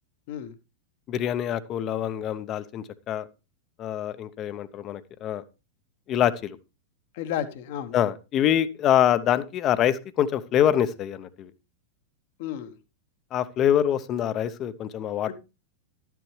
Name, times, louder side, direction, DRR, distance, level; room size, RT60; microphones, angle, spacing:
voice 1, 1.1-3.3 3.8-5.4 6.1-6.6 7.9-11.5 13.3-15.3, left 10 dB, 35° left, 0.7 m, -25 dB
voice 2, 7.1-7.9 12.4-12.7 15.3-15.4, left 10 dB, 55° left, 1.1 m, -32 dB
11.5 x 9.3 x 3.2 m
hypercardioid pair, 95°, 0 cm